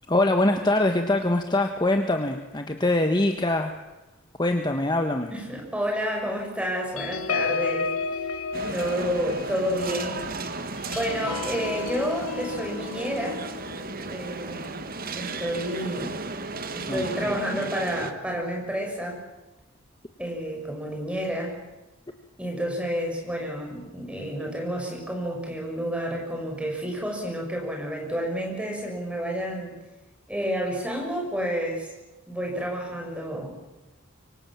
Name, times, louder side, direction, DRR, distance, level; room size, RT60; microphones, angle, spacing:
voice 1, 0.1-3.7 4.4-5.3 16.9-17.3, left 2 dB, 20° left, 5 dB, 1.3 m, -23 dB
voice 2, 5.3-7.9 8.3-8.4 8.7-10.3 10.9-13.4 14.0-14.7 15.1-16.2 16.7-19.2 20.2-21.6 22.4-29.8 30.3-31.9 32.3-33.6, equal, 5° right, 1 dB, 6.3 m, -30 dB
sound 1, 7.0-15.9 16.3-16.5 16.8-17.1, left 4 dB, 80° left, 1.1 m, -34 dB
sound 2, 8.5-18.1, right 3 dB, 45° right, 1.6 m, -35 dB
25.5 x 24.0 x 7.4 m, 1.1 s
head